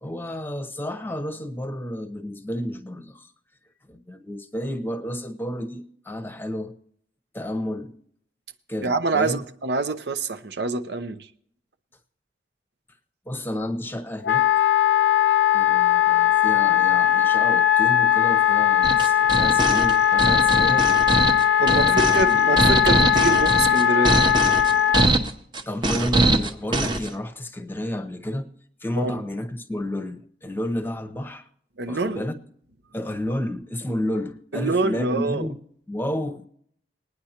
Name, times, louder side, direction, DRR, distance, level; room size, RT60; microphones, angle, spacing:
voice 1, 0.0-3.3 3.9-6.7 7.3-7.9 8.7-9.4 13.3-14.5 15.5-20.9 21.6-22.4 25.7-28.5 28.8-31.5 31.9-32.4 32.9-35.6 35.9-36.5, left 1 dB, 10° left, 0.8 m, -31 dB
voice 2, 8.8-11.3 21.2-24.9 29.0-29.2 31.8-32.2 34.5-35.5, right 3 dB, 80° right, 0.8 m, -26 dB
Wind instrument woodwind instrument, 14.2-25.1, left 10 dB, 80° left, 0.5 m, -19 dB
sound 1, 18.8-27.1, right 2 dB, 25° right, 0.7 m, -22 dB
21.0 x 9.5 x 2.9 m
head